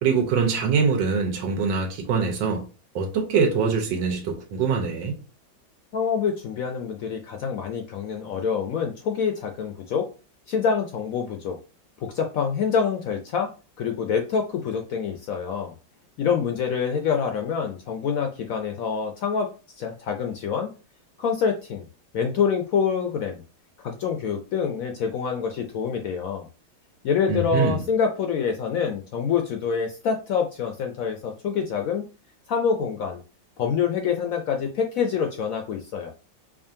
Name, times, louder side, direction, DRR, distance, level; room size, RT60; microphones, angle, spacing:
voice 1, 0.0-2.6 2.9-5.1 27.3-27.8, right 5 dB, 90° right, 1.5 m, -23 dB
voice 2, 5.9-10.0 10.5-11.6 12.0-13.5 13.8-15.7 16.2-19.5 19.8-20.7 21.2-21.8 22.1-23.4 23.8-26.5 27.0-32.0 32.5-33.2 33.6-36.1, left 6 dB, 70° left, 0.8 m, -26 dB
4.9 x 2.5 x 2.7 m
omnidirectional pair, 2.0 m